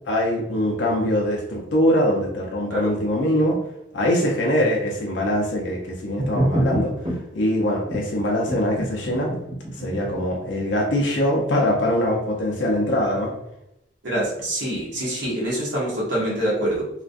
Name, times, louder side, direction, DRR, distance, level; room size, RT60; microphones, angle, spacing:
voice 1, 0.1-3.6 3.9-9.3 9.7-13.3, equal, 60° left, -2 dB, 0.5 m, -23 dB
sound 1, 6.2-7.2 7.9-8.0 8.5-10.6, right 1 dB, 30° right, 0.5 m, -26 dB
voice 2, 14.0-16.9, right 1 dB, 65° right, -5 dB, 0.8 m, -25 dB
2.3 x 2.1 x 2.5 m, 0.81 s
head